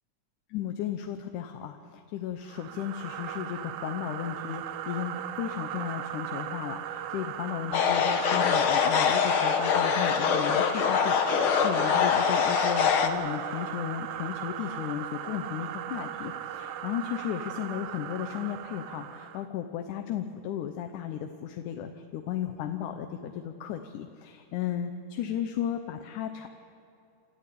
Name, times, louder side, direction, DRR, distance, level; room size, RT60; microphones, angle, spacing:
voice 1, 0.5-26.5, left 10 dB, 80° left, 6 dB, 2.3 m, -35 dB
sound 1, 2.5-19.5, right 11 dB, 85° right, 2.2 m, -38 dB
sound 2, 7.7-13.1, left 6 dB, 60° left, 1.5 m, -24 dB
29.0 x 13.0 x 8.5 m, 2.8 s
omnidirectional pair, 3.6 m